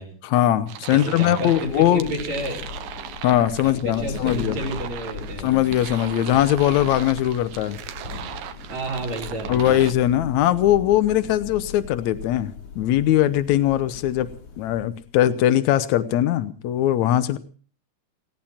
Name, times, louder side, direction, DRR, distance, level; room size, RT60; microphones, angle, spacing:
voice 1, 0.2-2.0 3.2-4.6 5.4-7.8 9.5-14.3 14.6-17.4, left 12 dB, 75° left, 13 dB, 2.3 m, -20 dB
sound 1, 0.7-9.9, right 11 dB, 85° right, 2.4 m, -38 dB
voice 2, 0.9-2.6 3.6-5.5 8.7-9.8, right 1 dB, 65° right, 0 dB, 5.6 m, -31 dB
Thunder / Rain, 1.1-15.2, left 5 dB, 60° left, 3.3 m, -38 dB
19.5 x 17.5 x 4.3 m, 0.41 s
omnidirectional pair, 3.4 m